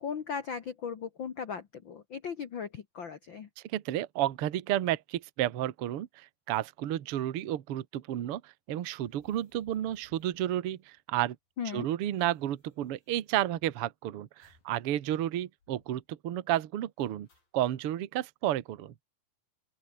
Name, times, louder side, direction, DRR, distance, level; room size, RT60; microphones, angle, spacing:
voice 1, 0.0-3.5 11.6-11.9, left 6 dB, 85° left, 1.0 m, -37 dB
voice 2, 3.6-11.4 11.7-17.3 17.5-18.9, right 12 dB, 60° right, 1.5 m, -32 dB
sound 1, 9.0-11.2 11.5-11.6 11.8-13.9 14.4-14.8 15.1-15.2 15.6-16.1 17.0-17.7, left 4 dB, 65° left, 9.4 m, -67 dB
open air
omnidirectional pair, 4.4 m